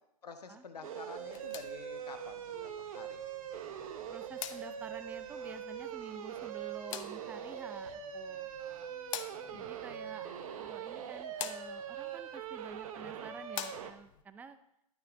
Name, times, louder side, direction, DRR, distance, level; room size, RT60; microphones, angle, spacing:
voice 1, 0.2-3.2 9.8-10.9, left 5 dB, 90° left, 7 dB, 1.3 m, -50 dB
sound 1, 0.7-9.9, left 7 dB, 30° left, 1.4 m, -61 dB
sound 2, 0.8-13.9, right 9 dB, 60° right, 1.1 m, -42 dB
sound 3, 1.2-14.2, left 11 dB, 55° left, 0.9 m, -48 dB
voice 2, 4.1-8.5 9.5-14.6, right 5 dB, 10° right, 10 dB, 0.5 m, -49 dB
11.0 x 9.5 x 3.8 m, 0.80 s
hypercardioid pair, 125°, 20 cm